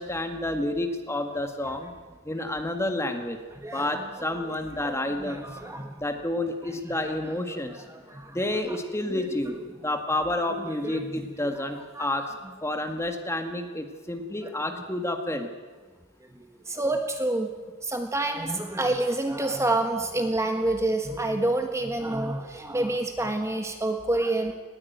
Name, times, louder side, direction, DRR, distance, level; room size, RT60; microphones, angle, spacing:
voice 1, 0.0-1.9 2.3-3.4 3.7-5.5 6.0-7.8 8.3-12.3 12.6-15.5, left 1 dB, 15° left, 5 dB, 1.8 m, -30 dB
voice 2, 3.5-4.1 4.8-6.0 6.9-8.4 8.6-8.8 9.1-9.5 10.7-11.5 12.0-12.1 16.3-17.5 17.8-24.5, right 2 dB, 15° right, 5 dB, 1.5 m, -29 dB
20.0 x 17.5 x 9.4 m, 1.4 s
head